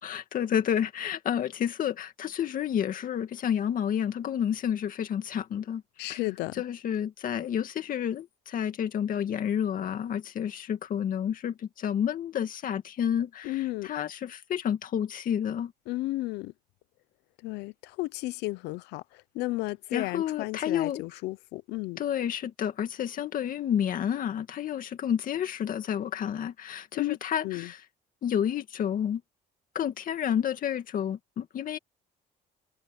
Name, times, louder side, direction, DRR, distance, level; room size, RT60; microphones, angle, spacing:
voice 1, 0.0-6.2 6.5-15.7 19.9-21.2 22.0-27.8 28.2-29.2 29.7-31.8, left 9 dB, 55° left, 2.2 m, -30 dB
voice 2, 6.0-6.5 13.4-13.9 15.9-16.5 17.4-19.0 19.3-22.0 27.0-27.2 27.4-27.7, left 19 dB, 90° left, 0.7 m, -33 dB
cardioid pair, 110°, 17 cm